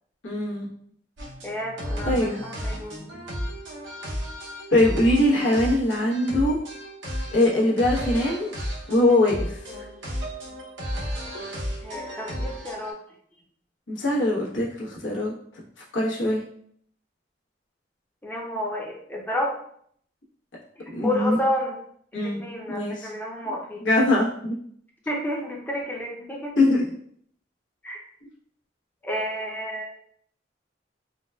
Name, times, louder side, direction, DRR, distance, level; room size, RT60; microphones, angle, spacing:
voice 1, 0.2-0.7 2.0-2.4 4.7-6.6 7.3-8.5 8.9-9.8 13.9-15.3 15.9-16.4 20.9-21.4 22.1-22.4 22.7-23.1 23.8-24.5 26.6-26.9, left 1 dB, 85° left, -5 dB, 1.0 m, -22 dB
sound 1, 1.2-12.9, equal, 85° right, 0.7 m, -33 dB
voice 2, 1.4-3.1 11.8-13.0 18.2-19.6 20.8-21.8 22.1-23.9 25.1-26.6 27.8-28.0 29.0-29.9, left 1 dB, 10° left, -2 dB, 0.5 m, -30 dB
3.8 x 2.2 x 2.2 m, 0.64 s
head